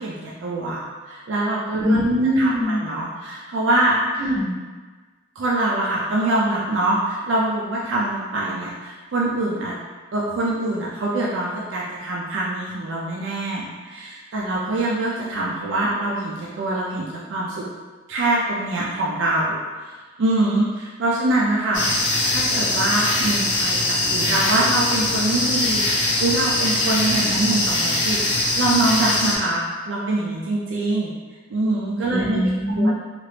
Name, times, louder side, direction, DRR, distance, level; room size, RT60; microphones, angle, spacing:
voice 1, 0.0-2.0 2.4-4.0 5.4-9.7 10.1-17.6 18.1-31.1 31.5-32.4 32.8-32.9, right 2 dB, 70° right, -4 dB, 0.4 m, -24 dB
voice 2, 1.8-2.8 4.2-4.5 32.1-32.9, equal, 25° right, -11 dB, 1.3 m, -21 dB
sound 1, 21.7-29.4, left 2 dB, 70° left, 0.6 m, -22 dB
2.9 x 2.4 x 3.2 m, 1.4 s
head